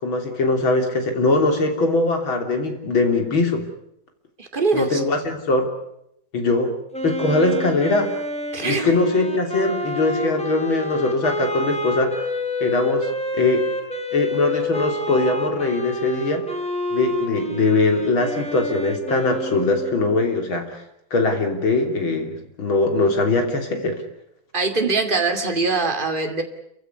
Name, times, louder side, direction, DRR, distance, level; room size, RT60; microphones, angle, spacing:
voice 1, 0.0-3.6 4.7-5.7 6.3-6.7 7.0-8.1 8.6-12.2 12.6-13.7 14.1-16.4 16.9-20.8 21.1-24.0, left 2 dB, 85° left, 4 dB, 4.1 m, -21 dB
voice 2, 4.4-5.0 8.5-8.9 24.5-26.4, right 3 dB, 25° right, 4 dB, 2.7 m, -22 dB
Wind instrument woodwind instrument, 6.9-20.3, left 1 dB, 5° left, 3.2 m, -28 dB
29.0 x 15.5 x 9.7 m, 0.79 s
omnidirectional pair, 2.2 m